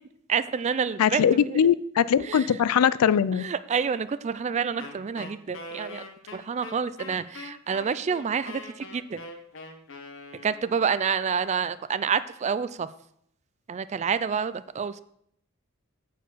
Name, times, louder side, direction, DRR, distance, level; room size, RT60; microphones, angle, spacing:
voice 1, 0.3-1.6 2.3-2.4 3.4-6.0 6.3-9.2 10.4-12.9 13.7-15.0, right 6 dB, 30° right, 14 dB, 0.3 m, -28 dB
voice 2, 1.0-3.4, left 8 dB, 80° left, 18 dB, 0.3 m, -21 dB
Wind instrument woodwind instrument, 4.8-10.9, left 2 dB, 60° left, 1.1 m, -42 dB
8.1 x 4.7 x 6.2 m, 0.71 s
head